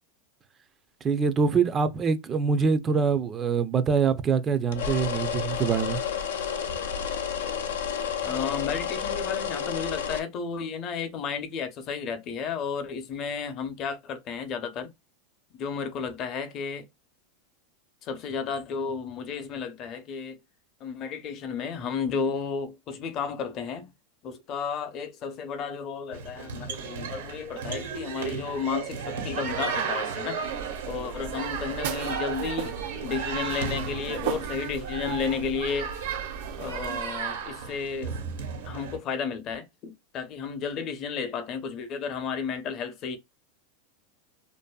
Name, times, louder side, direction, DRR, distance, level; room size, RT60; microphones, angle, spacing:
voice 1, 1.0-6.0, right 5 dB, 25° right, 0.4 m, -24 dB
sound 1, 4.7-10.2, left 7 dB, 85° left, 0.5 m, -30 dB
voice 2, 8.2-14.9 15.5-16.9 18.0-20.4 20.8-23.9 24.2-30.4 30.8-32.7 33.0-35.9 36.6-38.2 38.6-43.2, left 6 dB, 40° left, 0.7 m, -33 dB
sound 2, 26.1-39.0, right 6 dB, 90° right, 1.1 m, -34 dB
sound 3, 30.4-37.0, right 8 dB, 75° right, 0.5 m, -36 dB
2.6 x 2.6 x 2.2 m
supercardioid pair, 125°, 0 cm